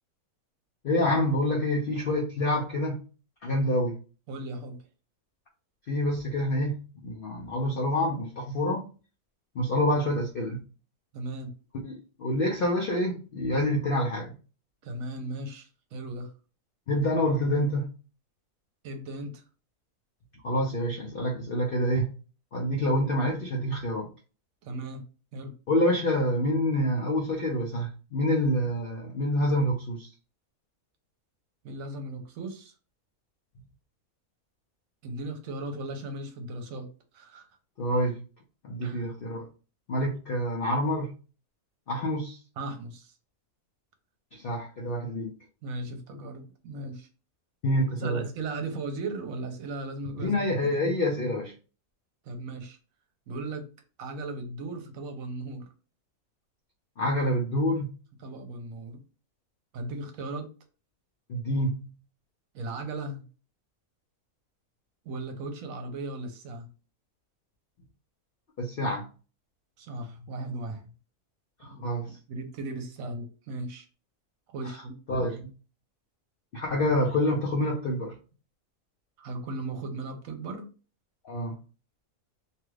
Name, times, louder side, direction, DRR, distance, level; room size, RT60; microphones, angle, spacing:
voice 1, 0.8-3.0 3.4-4.0 5.9-8.9 9.5-10.6 11.8-14.3 16.9-17.9 20.4-22.1 22.5-24.1 25.7-30.1 37.8-38.2 38.6-39.5 39.9-41.1 41.9-42.4 44.3-45.3 47.6-48.2 50.2-51.5 57.0-57.9 61.3-61.9 68.6-69.1 71.6-72.2 74.6-74.8 75.1-75.5 76.5-78.2 81.2-81.6, left 1 dB, 70° left, 0 dB, 0.5 m, -27 dB
voice 2, 4.3-4.8 11.1-11.5 14.8-16.3 18.8-19.4 24.6-25.0 25.3-25.5 31.6-32.7 35.0-36.9 37.1-37.5 38.8-39.1 42.6-43.2 45.6-47.1 48.0-50.3 50.6-50.7 52.2-52.8 53.3-53.6 54.0-55.7 58.2-59.0 59.7-60.5 62.5-63.2 65.0-66.7 69.8-70.9 71.7-71.9 72.3-73.9 74.5-75.0 79.2-80.7, right 2 dB, 70° right, 5 dB, 1.0 m, -37 dB
2.8 x 2.3 x 3.1 m, 0.35 s
omnidirectional pair, 1.6 m